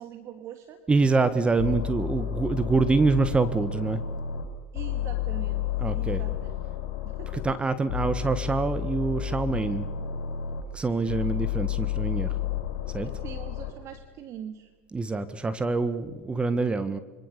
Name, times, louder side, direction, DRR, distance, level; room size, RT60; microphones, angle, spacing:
voice 1, 0.0-0.8 4.7-7.6 13.0-14.7, right 9 dB, 45° right, 8 dB, 2.1 m, -43 dB
voice 2, 0.9-4.0 5.8-6.2 7.3-9.9 10.7-12.4 12.9-13.1 14.9-17.0, right 3 dB, 15° right, 11 dB, 1.6 m, -25 dB
sound 1, 1.6-4.4 4.7-7.5 7.9-10.6 11.1-13.7, left 10 dB, 70° left, 5.9 m, -31 dB
26.5 x 24.0 x 6.8 m, 1.2 s
hypercardioid pair, 90°, 7 cm